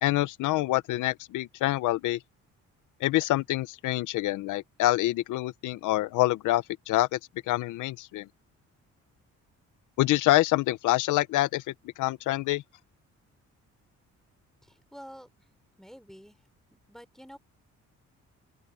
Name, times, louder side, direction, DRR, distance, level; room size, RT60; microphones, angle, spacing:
voice 1, 0.0-2.2 3.0-7.2 7.5-8.3 10.0-11.6 12.0-12.6, left 16 dB, 90° left, 0.8 m, -26 dB
voice 2, 14.6-15.5 15.8-16.5 16.9-17.4, equal, ahead, 3.6 m, -49 dB
open air
cardioid pair, 90°, 30 cm